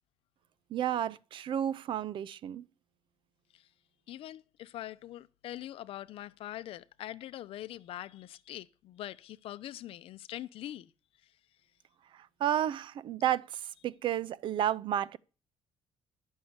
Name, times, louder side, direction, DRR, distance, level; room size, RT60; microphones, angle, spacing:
voice 1, 0.7-2.7 12.1-15.2, right 11 dB, 55° right, 0.5 m, -32 dB
voice 2, 4.1-10.9 11.2-11.3, left 13 dB, 70° left, 0.6 m, -43 dB
11.0 x 6.4 x 7.9 m
cardioid pair, 165°, 10 cm